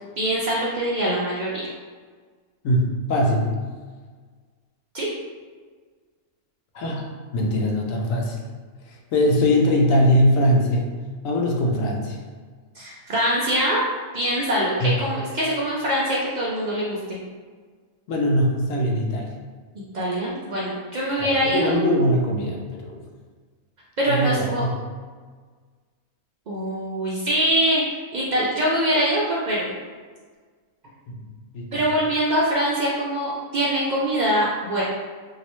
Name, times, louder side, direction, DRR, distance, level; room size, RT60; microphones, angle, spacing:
voice 1, 0.2-1.5 4.9-5.1 12.8-13.8 14.1-17.2 19.9-21.8 24.0-24.7 26.5-27.8 28.1-29.7 31.7-34.8, right 1 dB, 90° right, -6 dB, 0.4 m, -23 dB
voice 2, 2.6-3.5 6.7-7.1 7.3-8.4 8.9-10.9 11.2-12.2 14.8-14.9 18.1-19.3 21.2-23.0 24.1-24.8 31.1-31.2 31.5-31.8, equal, 70° left, 0 dB, 1.0 m, -21 dB
3.0 x 2.7 x 3.0 m, 1.5 s
omnidirectional pair, 1.5 m